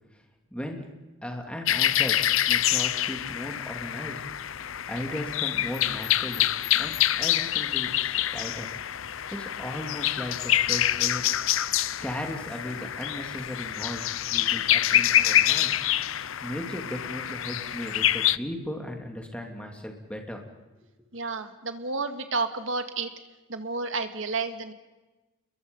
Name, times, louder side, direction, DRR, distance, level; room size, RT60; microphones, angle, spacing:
voice 1, 0.5-0.9 1.2-2.2 2.5-4.2 4.5-6.5 6.7-8.7 9.1-11.3 12.0-15.9 16.4-20.4, equal, 5° left, 2 dB, 2.8 m, -37 dB
sound 1, 1.7-18.4, left 12 dB, 80° left, 0.6 m, -26 dB
voice 2, 21.1-23.1 23.5-24.7, right 3 dB, 70° right, 8 dB, 2.0 m, -31 dB
30.0 x 22.0 x 5.5 m, 1.2 s
head